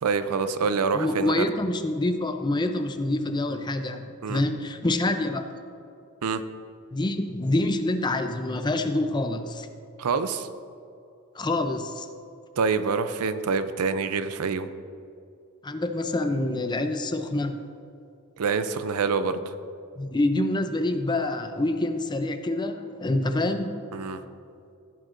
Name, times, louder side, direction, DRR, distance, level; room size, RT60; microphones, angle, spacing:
voice 1, 0.0-1.5 4.2-4.4 6.2-6.4 10.0-10.5 12.6-14.7 18.4-19.5 23.9-24.2, right 5 dB, 90° right, 11 dB, 0.5 m, -26 dB
voice 2, 0.9-5.6 6.9-9.7 11.3-12.1 15.6-17.6 20.0-23.7, left 2 dB, 20° left, 7 dB, 0.5 m, -26 dB
15.0 x 7.7 x 2.5 m, 2.5 s
head